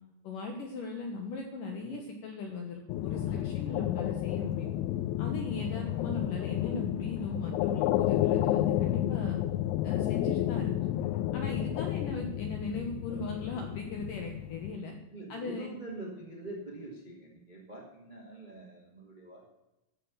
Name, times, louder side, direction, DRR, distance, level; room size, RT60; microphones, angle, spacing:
voice 1, 0.2-4.7 5.2-9.4 9.8-10.9 11.3-15.0 15.3-15.7, left 3 dB, 70° left, 3 dB, 2.1 m, -38 dB
sound 1, 2.9-14.8, left 13 dB, 85° left, 2.9 m, -31 dB
voice 2, 15.1-19.6, right 2 dB, 30° right, -2 dB, 0.9 m, -44 dB
14.0 x 6.5 x 7.2 m, 0.93 s
omnidirectional pair, 5.3 m